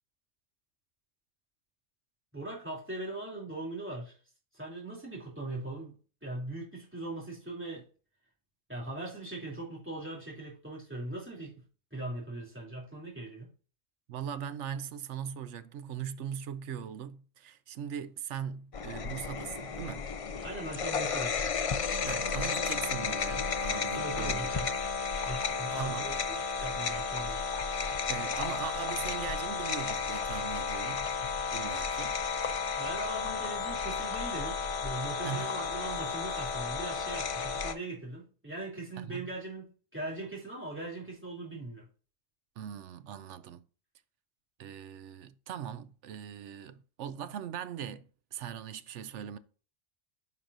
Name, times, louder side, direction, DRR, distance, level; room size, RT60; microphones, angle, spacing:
voice 1, 2.3-4.2 4.5-5.9 6.2-7.8 8.7-11.6 11.9-13.5 20.4-21.4 24.0-24.7 25.2-27.4 32.8-41.9, right 2 dB, 10° right, 2.9 m, -40 dB
voice 2, 14.1-20.0 22.0-24.5 25.7-26.1 28.1-31.1 31.5-32.2 35.2-35.5 39.0-39.3 42.6-43.7 44.6-49.4, right 9 dB, 75° right, 0.9 m, -40 dB
sound 1, 18.7-37.7, left 5 dB, 50° left, 0.4 m, -33 dB
9.7 x 5.8 x 2.6 m
omnidirectional pair, 1.3 m